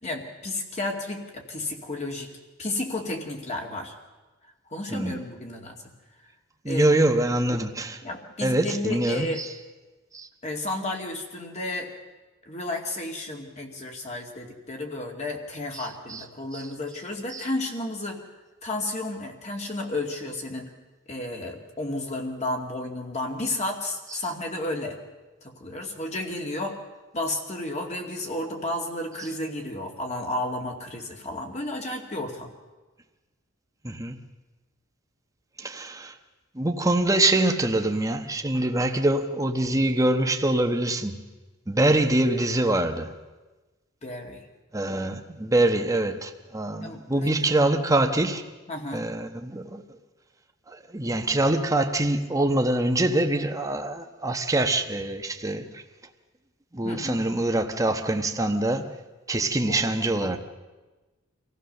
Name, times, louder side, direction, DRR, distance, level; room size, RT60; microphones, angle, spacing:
voice 1, 0.0-2.3 2.6-3.9 4.7-5.8 6.6-6.9 8.0-9.4 10.4-11.9 12.5-18.2 18.6-20.7 21.1-25.0 25.4-26.8 27.1-32.5 44.0-44.4 46.8-47.6 48.7-49.0 56.8-57.2 59.7-59.9 60.2-60.4, left 2 dB, 35° left, 2.4 m, -32 dB
voice 2, 4.9-5.2 6.6-8.0 8.4-9.5 10.1-10.3 15.8-16.2 16.5-16.6 17.3-17.4 33.8-34.2 35.6-36.1 36.5-41.2 41.7-43.1 44.7-48.4 48.9-49.8 50.7-55.8 56.7-58.9 59.3-60.4, right 2 dB, 15° right, 1.2 m, -24 dB
25.0 x 15.5 x 6.7 m
head